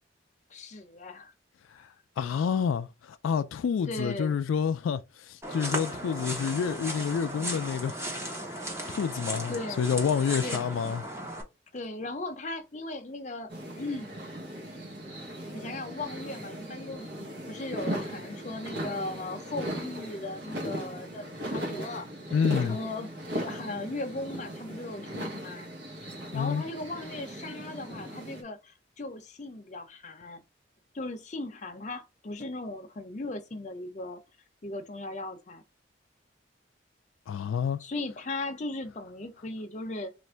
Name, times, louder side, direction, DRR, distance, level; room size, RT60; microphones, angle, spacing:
voice 1, 0.5-1.3 3.8-4.4 9.5-9.9 10.4-10.6 11.7-14.1 15.3-22.1 22.6-25.7 26.3-30.4 30.9-34.2 34.6-35.6 37.8-40.1, left 2 dB, 35° left, 0.6 m, -37 dB
voice 2, 2.2-8.0 8.9-11.0 22.3-22.8 26.3-26.6 37.3-37.8, left 7 dB, 90° left, 0.3 m, -28 dB
sound 1, 5.4-11.4, right 1 dB, 15° right, 0.7 m, -36 dB
sound 2, 13.5-28.4, equal, 60° right, 0.9 m, -38 dB
3.1 x 2.5 x 4.3 m
head